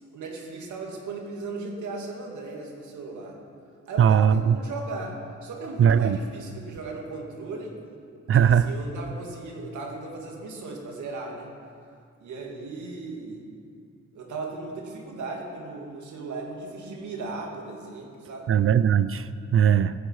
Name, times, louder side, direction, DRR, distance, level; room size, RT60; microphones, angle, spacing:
voice 1, 0.1-3.4 3.9-7.7 8.4-11.5 12.2-13.4 14.1-18.5, right 3 dB, 85° right, 0 dB, 2.6 m, -37 dB
voice 2, 4.0-4.6 5.8-6.2 8.3-8.7 18.5-19.9, right 8 dB, 50° right, 14 dB, 0.4 m, -19 dB
15.0 x 14.5 x 4.8 m, 2.4 s
wide cardioid pair, 140°, 29 cm